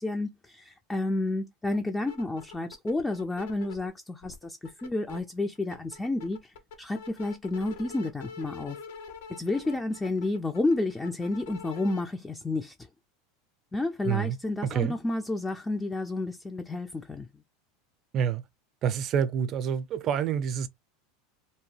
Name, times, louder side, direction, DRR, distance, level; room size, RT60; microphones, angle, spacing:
voice 1, 0.0-8.8 9.3-12.7 13.7-17.3, left 2 dB, 15° left, 0.3 m, -31 dB
sound 1, 1.7-3.9 4.2-5.2 5.6-12.0, left 5 dB, 75° left, 0.6 m, -45 dB
voice 2, 14.0-14.4 14.7-15.0 18.1-18.4 18.8-20.7, right 8 dB, 45° right, 0.5 m, -27 dB
2.7 x 2.2 x 3.2 m
hypercardioid pair, 100°, 0 cm